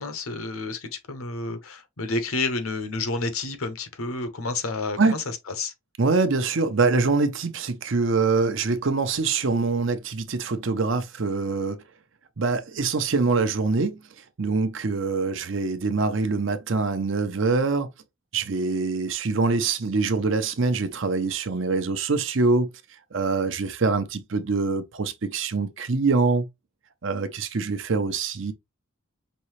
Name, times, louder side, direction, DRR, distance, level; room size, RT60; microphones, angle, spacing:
voice 1, 0.0-5.7, left 3 dB, 85° left, 1.0 m, -30 dB
voice 2, 6.0-11.8 12.4-14.0 14.4-17.9 18.3-22.7 23.1-26.5 27.0-28.5, right 4 dB, 65° right, 0.7 m, -24 dB
5.3 x 2.7 x 3.1 m
head